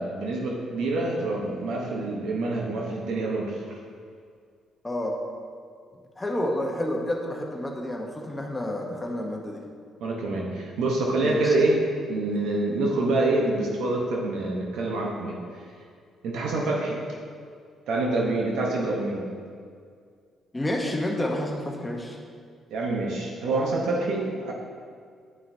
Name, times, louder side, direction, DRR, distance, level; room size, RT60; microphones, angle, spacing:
voice 1, 0.0-3.8 10.0-11.8 12.1-15.4 16.2-17.0 17.9-19.3 22.7-24.5, right 2 dB, 85° right, -1 dB, 0.9 m, -26 dB
voice 2, 4.8-5.1 6.2-9.6 11.2-11.5 20.5-22.2, left 1 dB, 15° left, 0 dB, 0.8 m, -29 dB
9.4 x 5.6 x 2.7 m, 2.2 s
cardioid pair, 90°, 0 cm